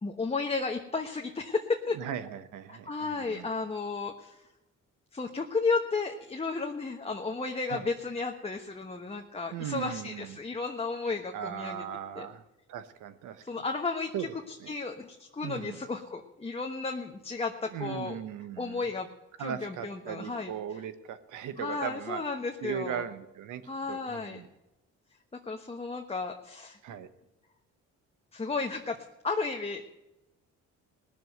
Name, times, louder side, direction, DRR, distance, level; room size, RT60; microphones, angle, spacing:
voice 1, 0.0-2.0 2.7-4.4 5.1-11.8 12.1-12.3 13.4-14.1 14.5-18.2 18.6-19.1 19.4-20.5 21.6-23.0 23.7-24.4 25.4-26.8 28.3-29.8, left 4 dB, 20° left, 2 dB, 1.1 m, -33 dB
voice 2, 1.9-3.5 7.6-7.9 9.5-10.4 11.3-12.4 12.7-13.4 14.1-14.3 14.6-14.7 15.4-15.8 17.7-18.8 19.4-22.2 22.6-23.6 23.9-24.5 26.8-27.1, right 9 dB, 85° right, 12 dB, 1.1 m, -38 dB
19.0 x 7.0 x 7.9 m, 0.96 s
cardioid pair, 90°, 30 cm